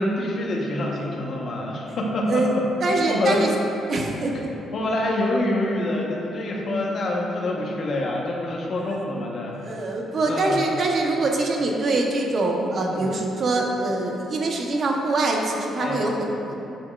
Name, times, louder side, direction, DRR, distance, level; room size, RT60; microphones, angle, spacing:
voice 1, 0.0-3.5 4.7-9.9 10.3-10.6 12.9-13.1 15.8-16.0, left 1 dB, 55° left, -1 dB, 1.1 m, -26 dB
voice 2, 2.3-3.5 3.9-4.3 8.9-9.0 9.6-16.5, right 2 dB, 50° right, 0 dB, 0.9 m, -24 dB
7.7 x 7.0 x 2.4 m, 2.9 s
cardioid pair, 90°, 0 cm